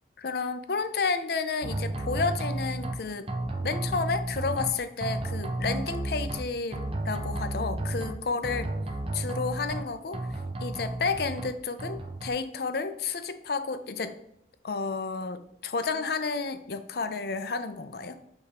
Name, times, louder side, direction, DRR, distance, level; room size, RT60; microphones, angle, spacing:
voice 1, 0.2-3.3 3.6-8.6 9.1-14.1 14.6-18.2, left 4 dB, 60° left, 10 dB, 0.5 m, -31 dB
sound 1, 1.6-2.9 3.3-4.7 5.0-6.4 6.7-8.1 8.4-9.8 10.1-11.5 11.8-12.3, right 2 dB, 30° right, 0.6 m, -32 dB
6.7 x 3.5 x 4.2 m, 0.77 s
head